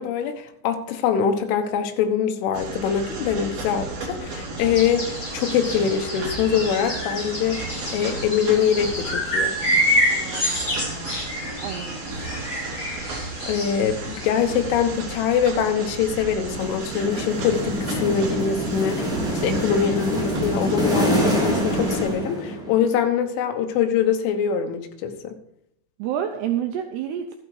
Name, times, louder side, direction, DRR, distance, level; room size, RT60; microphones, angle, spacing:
voice 1, 0.0-9.6 13.5-25.4, left 8 dB, 75° left, 6 dB, 3.6 m, -24 dB
sound 1, 2.5-22.1, right 3 dB, 55° right, 4.3 m, -34 dB
sound 2, 4.6-14.7, equal, 25° left, 5.5 m, -28 dB
voice 2, 10.1-12.0 26.0-27.4, right 10 dB, 90° right, 5 dB, 2.3 m, -30 dB
sound 3, 16.4-22.9, equal, ahead, 2.0 m, -25 dB
13.0 x 8.9 x 4.8 m, 0.79 s
omnidirectional pair, 5.8 m